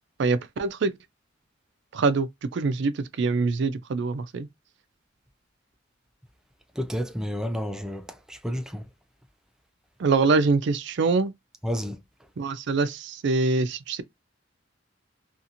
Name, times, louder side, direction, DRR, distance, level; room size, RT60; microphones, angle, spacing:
voice 1, 0.2-0.9 1.9-4.5 10.0-11.3 12.4-14.0, right 4 dB, 65° right, 0.4 m, -24 dB
voice 2, 6.8-8.0 8.4-8.8 11.6-11.9, equal, 5° right, 0.3 m, -29 dB
2.8 x 2.5 x 2.5 m
head